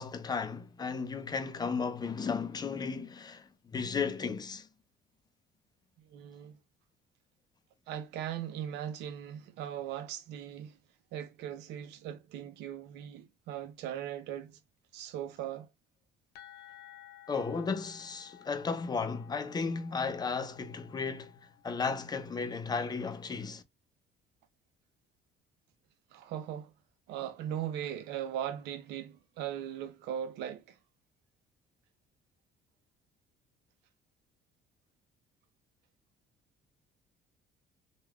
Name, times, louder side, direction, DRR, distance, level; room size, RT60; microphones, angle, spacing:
voice 1, 0.0-4.7 17.3-21.3 21.6-23.6, left 5 dB, 25° left, 0.5 m, -34 dB
voice 2, 6.1-6.6 7.9-10.8 11.1-14.6 14.9-15.7 26.1-26.7 27.1-30.8, right 10 dB, 85° right, 0.6 m, -39 dB
sound 1, 16.3-21.9, left 12 dB, 80° left, 0.6 m, -55 dB
3.3 x 2.3 x 2.3 m
cardioid pair, 110°, 17 cm